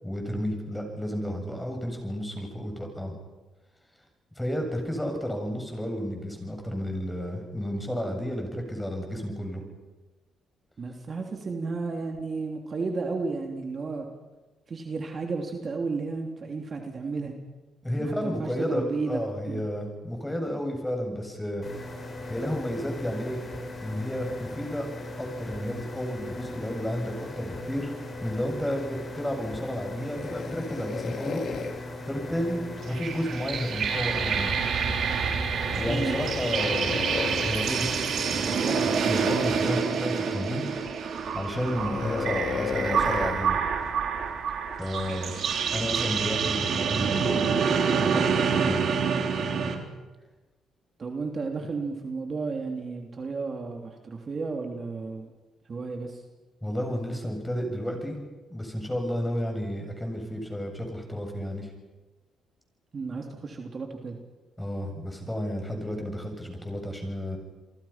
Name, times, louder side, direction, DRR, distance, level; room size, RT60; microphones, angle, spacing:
voice 1, 0.0-3.1 4.4-9.6 17.8-21.7 22.3-23.4 23.8-24.9 25.2-27.9 28.2-31.4 32.0-34.6 35.8-37.0 37.4-37.9 38.3-40.6 41.3-43.6 44.8-45.3 45.7-47.6 48.0-48.9 49.3-49.8 56.6-58.2 58.5-61.7 64.6-67.4, equal, 10° left, 3 dB, 7.8 m, -32 dB
voice 2, 10.8-14.1 14.7-17.3 17.9-19.6 35.9-36.2 51.0-55.3 55.7-56.2 62.9-64.2, right 4 dB, 40° right, 3 dB, 3.1 m, -33 dB
sound 1, 21.6-39.6, left 1 dB, 35° left, 6.2 m, -39 dB
sound 2, 30.0-33.3 35.6-37.6 38.8-39.2 39.8-39.9 40.6-41.1 41.6-45.0 45.8-46.2, left 6 dB, 60° left, 3.1 m, -35 dB
sound 3, 32.8-49.8, right 6 dB, 65° right, 3.7 m, -27 dB
29.5 x 23.0 x 5.9 m, 1.2 s
cardioid pair, 90°, 0 cm